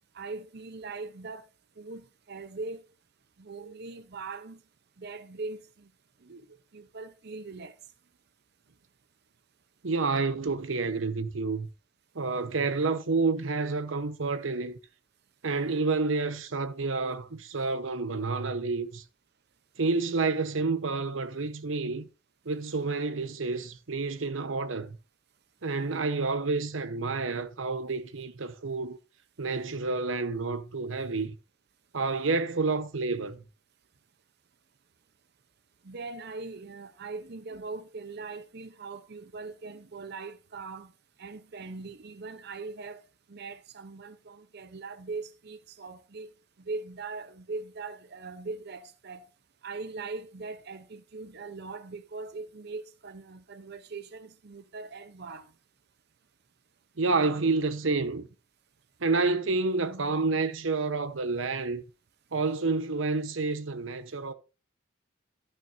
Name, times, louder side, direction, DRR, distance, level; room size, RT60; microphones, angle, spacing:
voice 1, 0.1-1.5 1.8-2.8 3.4-4.6 5.0-5.9 6.2-6.5 6.7-7.8 35.8-40.9 41.2-43.0 43.3-46.3 46.6-49.3 49.6-55.5, right 3 dB, 55° right, 0.7 m, -40 dB
voice 2, 9.8-11.7 12.1-14.8 15.4-19.0 19.8-22.1 22.4-25.0 25.6-29.0 29.4-31.4 31.9-33.4 57.0-58.3 59.0-61.8 62.3-64.3, right 3 dB, 85° right, 1.0 m, -29 dB
12.5 x 9.1 x 2.6 m
head